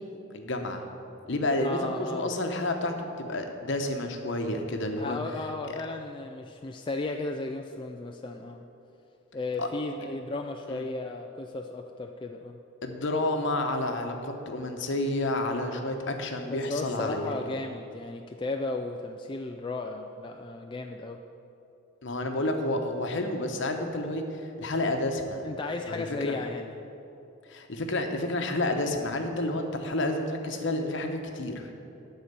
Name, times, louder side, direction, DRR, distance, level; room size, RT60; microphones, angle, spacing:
voice 1, 0.3-0.8 1.3-5.2 5.7-5.8 9.6-9.7 10.7-10.8 12.8-17.4 22.0-25.4 25.9-26.4 27.5-31.7, left 1 dB, 60° left, 4 dB, 1.0 m, -30 dB
voice 2, 1.6-2.3 5.0-8.6 9.3-12.6 16.5-21.2 25.4-26.7, left 2 dB, 25° left, 4 dB, 0.3 m, -35 dB
12.5 x 4.3 x 8.1 m, 2.9 s
head